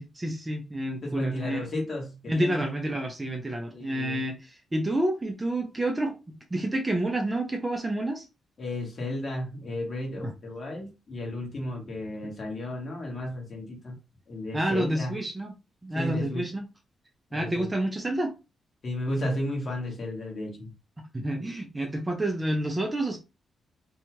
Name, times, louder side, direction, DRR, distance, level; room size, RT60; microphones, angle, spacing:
voice 1, 0.0-1.7 2.3-8.3 10.2-10.3 14.5-15.5 15.8-16.6 17.3-18.3 21.0-23.2, right 1 dB, 15° right, 0.4 m, -29 dB
voice 2, 1.0-2.6 3.7-4.2 8.6-14.0 14.3-15.2 15.9-16.5 17.3-17.7 18.8-20.7, left 1 dB, 40° left, 1.2 m, -33 dB
2.6 x 2.3 x 2.9 m
wide cardioid pair, 150°, 0 cm